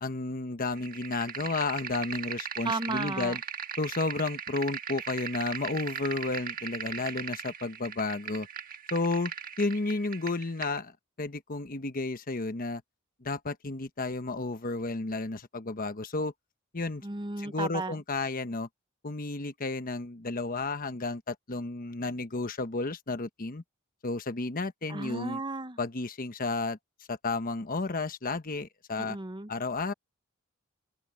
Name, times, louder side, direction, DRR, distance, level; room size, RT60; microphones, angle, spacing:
voice 1, 0.0-3.4 3.8-8.5 8.9-9.3 9.6-10.9 11.2-12.8 13.2-16.3 16.7-17.0 17.4-18.7 19.0-23.6 24.0-25.4 25.8-26.8 27.1-29.2 29.5-29.9, left 3 dB, 40° left, 1.1 m, -32 dB
sound 1, 0.8-10.8, right 7 dB, 45° right, 1.5 m, -39 dB
voice 2, 2.6-3.4 17.0-18.0 24.9-25.8 29.0-29.5, right 2 dB, 20° right, 0.9 m, -34 dB
open air
head